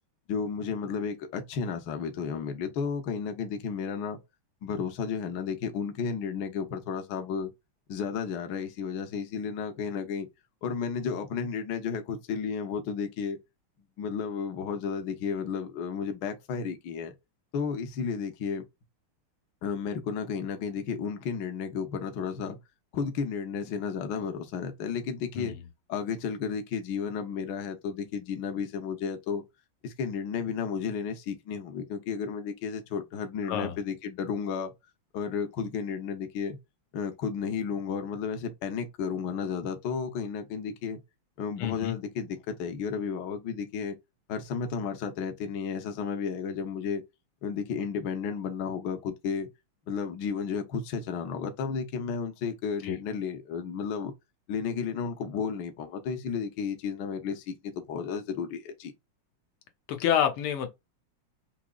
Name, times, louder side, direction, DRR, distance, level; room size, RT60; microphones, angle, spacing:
voice 1, 0.3-4.2 4.6-7.5 7.9-10.3 10.6-13.4 14.0-17.1 17.5-18.6 19.6-22.6 22.9-25.6 25.9-29.4 29.8-34.7 35.1-36.6 36.9-41.0 41.4-43.9 44.3-47.0 47.4-49.5 49.9-54.1 54.5-58.9, left 6 dB, 65° left, 1.3 m, -33 dB
voice 2, 41.6-42.0 52.8-53.0 59.9-60.7, left 9 dB, 90° left, 1.7 m, -28 dB
4.8 x 2.9 x 2.3 m
omnidirectional pair, 2.3 m